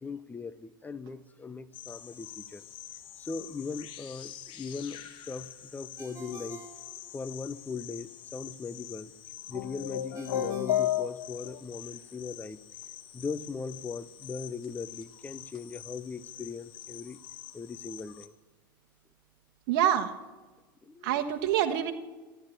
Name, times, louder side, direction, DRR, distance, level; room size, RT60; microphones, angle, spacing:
voice 1, 0.0-2.6 3.2-6.6 7.1-9.1 9.5-12.6 13.1-17.2 17.5-18.3 20.9-21.3, left 4 dB, 15° left, 16 dB, 0.6 m, -39 dB
sound 1, 1.7-18.3, left 12 dB, 45° left, 1.5 m, -47 dB
Ringtone, 6.0-7.6 10.1-11.8, right 6 dB, 25° right, 3.0 m, -50 dB
sound 2, 9.5-11.6, left 11 dB, 75° left, 0.8 m, -30 dB
voice 2, 19.7-20.1 21.0-21.9, right 10 dB, 60° right, 5 dB, 1.2 m, -26 dB
14.5 x 10.5 x 8.9 m, 1.3 s
hypercardioid pair, 100°, 11 cm